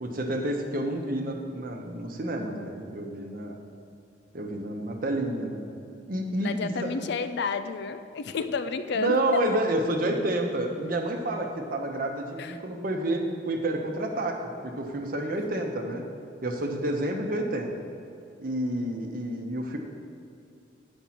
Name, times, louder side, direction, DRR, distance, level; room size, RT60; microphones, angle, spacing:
voice 1, 0.0-3.6 4.3-5.7 6.1-6.9 9.0-14.4 14.6-16.0 16.4-17.7 18.4-19.8, right 1 dB, 50° right, 3 dB, 0.9 m, -29 dB
voice 2, 6.4-9.4 12.4-12.6 16.8-16.9, left 5 dB, 60° left, 10 dB, 0.4 m, -31 dB
8.5 x 5.2 x 5.9 m, 2.5 s
head